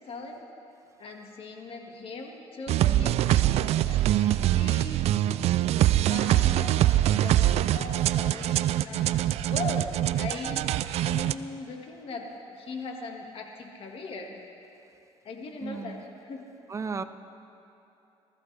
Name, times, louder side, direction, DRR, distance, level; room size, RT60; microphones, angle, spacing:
voice 1, 0.1-0.5 1.0-5.1 6.1-14.4 15.2-16.5, left 3 dB, 60° left, 2 dB, 1.8 m, -40 dB
sound 1, 2.7-11.3, right 13 dB, 70° right, 0.4 m, -24 dB
voice 2, 15.6-16.0 16.7-17.0, right 5 dB, 25° right, 10 dB, 0.6 m, -35 dB
20.0 x 14.0 x 3.4 m, 2.9 s
cardioid pair, 85°, 11 cm